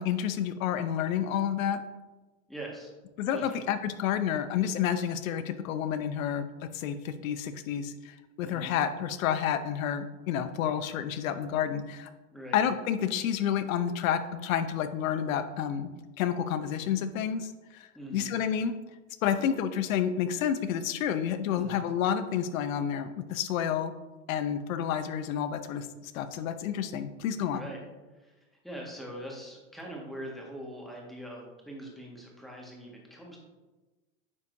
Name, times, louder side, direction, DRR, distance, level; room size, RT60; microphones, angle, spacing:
voice 1, 0.0-1.8 3.2-6.5 6.7-12.1 12.5-18.7 19.2-23.9 24.3-27.7, left 9 dB, 70° left, 11 dB, 0.8 m, -30 dB
voice 2, 2.5-2.9 3.3-3.7 8.4-8.7 12.3-12.6 17.9-18.3 21.5-21.8 27.5-27.8 28.1-33.4, equal, ahead, -2 dB, 1.6 m, -42 dB
9.3 x 5.6 x 2.7 m, 1.2 s
hypercardioid pair, 115°, 43 cm